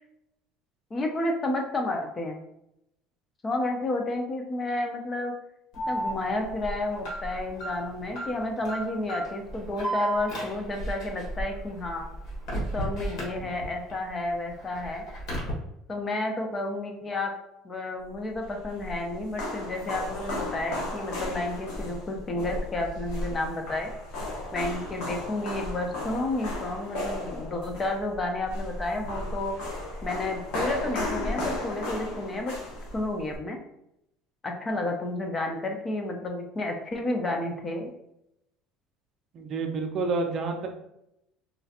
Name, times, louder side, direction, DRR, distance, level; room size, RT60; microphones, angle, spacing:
voice 1, 0.9-2.4 3.4-5.3 5.9-12.1 12.5-15.0 15.9-17.3 17.6-23.9 24.5-29.6 30.0-32.6 32.9-33.6 34.4-37.9, left 2 dB, 20° left, 3 dB, 0.4 m, -31 dB
Alarm, 5.7-13.9 14.3-15.5, right 1 dB, 55° left, 1.5 m, -34 dB
sound 1, 18.3-33.4, left 1 dB, 75° left, 1.2 m, -35 dB
voice 2, 39.3-40.7, right 3 dB, 40° right, 4 dB, 0.5 m, -29 dB
4.2 x 2.7 x 2.4 m, 0.81 s
cardioid pair, 160°, 0 cm